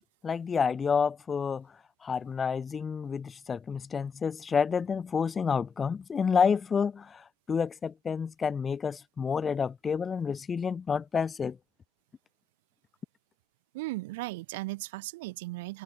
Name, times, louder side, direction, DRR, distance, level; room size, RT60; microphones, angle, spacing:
voice 1, 0.2-1.7 2.0-11.6, left 6 dB, 15° left, 0.3 m, -29 dB
voice 2, 13.7-15.8, right 21 dB, 50° right, 1.8 m, -36 dB
hypercardioid pair, 120°, 0 cm